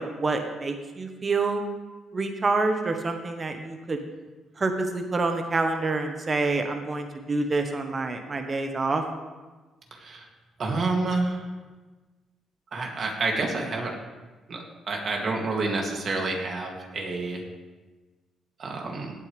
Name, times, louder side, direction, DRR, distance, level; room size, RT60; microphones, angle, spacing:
voice 1, 0.0-1.6 2.1-4.0 4.6-9.0, right 3 dB, 35° right, 5 dB, 1.2 m, -27 dB
voice 2, 10.6-11.4 12.7-13.9 14.5-17.4 18.6-19.1, right 3 dB, 55° right, 0 dB, 2.7 m, -28 dB
17.5 x 8.4 x 3.5 m, 1.2 s
cardioid pair, 90°, 0 cm